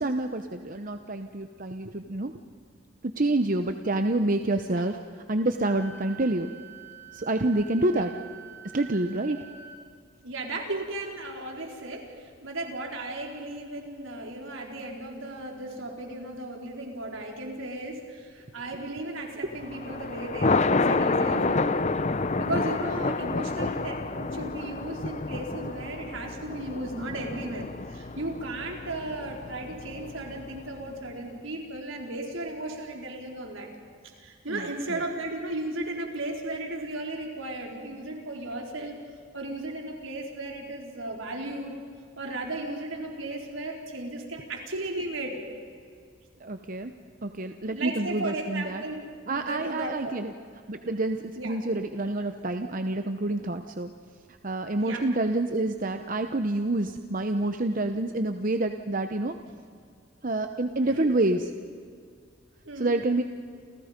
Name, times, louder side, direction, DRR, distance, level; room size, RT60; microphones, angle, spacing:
voice 1, 0.0-2.3 3.1-5.0 5.3-6.5 7.1-8.1 8.7-9.4 34.5-35.0 46.4-46.9 47.2-48.8 49.3-50.3 50.7-53.9 54.4-59.4 60.2-61.4 62.8-63.2, right 2 dB, 40° right, 7 dB, 0.9 m, -27 dB
Wind instrument woodwind instrument, 5.6-9.8, right 7 dB, 15° right, 3.5 m, -47 dB
voice 2, 10.2-21.9 22.4-33.7 34.0-39.0 39.3-41.8 42.2-45.4 47.7-50.2 51.3-51.6 54.8-55.1 57.3-57.4 57.7-57.8 60.8-61.1 62.6-63.0, right 2 dB, 75° right, 1 dB, 4.5 m, -35 dB
Thunder, 19.6-30.9, left 3 dB, 35° left, 0.7 m, -29 dB
29.5 x 29.0 x 5.3 m, 2.2 s
head